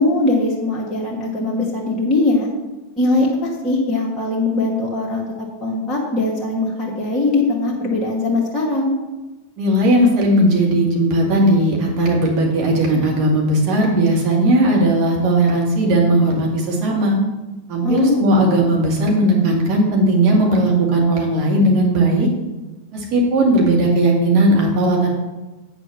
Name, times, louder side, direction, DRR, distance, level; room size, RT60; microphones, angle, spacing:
voice 1, 0.0-2.5 3.0-5.2 5.6-8.9 17.8-18.2, left 2 dB, 15° left, -6 dB, 2.3 m, -20 dB
voice 2, 9.6-17.2 17.7-22.3 22.9-25.1, right 1 dB, 40° right, -2 dB, 2.4 m, -17 dB
8.8 x 6.9 x 6.0 m, 1.1 s
figure-of-eight pair, 90°, 0 cm